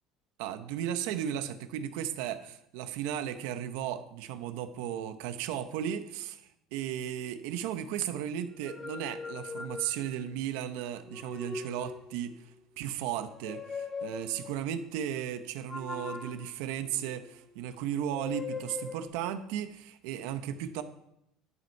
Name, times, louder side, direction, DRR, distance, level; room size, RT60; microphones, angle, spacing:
voice 1, 0.4-12.5 12.8-20.8, right 10 dB, 85° right, 10 dB, 0.9 m, -35 dB
sound 1, 8.6-10.4 11.0-12.3 13.3-14.6 15.7-17.5 18.1-19.1, left 4 dB, 15° left, 0.6 m, -41 dB
11.0 x 7.9 x 4.6 m, 0.78 s
cardioid pair, 180°, 0 cm